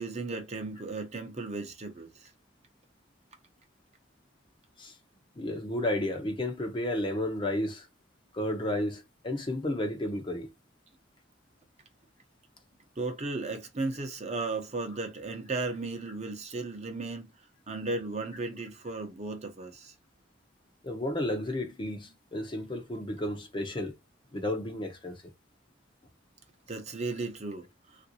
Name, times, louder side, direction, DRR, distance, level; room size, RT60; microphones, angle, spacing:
voice 1, 0.0-2.1 13.0-17.3 17.7-19.9 26.7-27.6, right 3 dB, 35° right, 0.7 m, -35 dB
voice 2, 5.4-7.9 8.3-10.5 20.8-23.9 24.3-25.2, left 1 dB, 25° left, 0.6 m, -32 dB
3.4 x 2.5 x 2.7 m
head